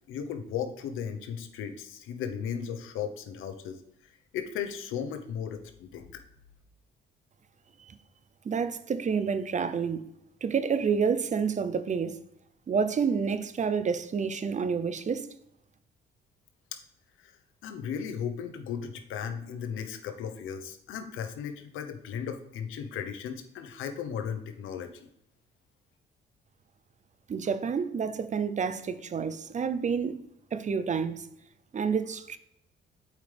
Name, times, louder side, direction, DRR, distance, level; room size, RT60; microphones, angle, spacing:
voice 1, 0.1-6.2 16.7-16.8 17.2-25.1, left 7 dB, 85° left, 0.9 m, -36 dB
voice 2, 8.4-10.0 10.4-12.2 12.7-15.3 27.3-30.2 30.5-31.3 31.7-32.4, right 6 dB, 35° right, 0.6 m, -29 dB
7.8 x 5.2 x 3.4 m
cardioid pair, 90°, 20 cm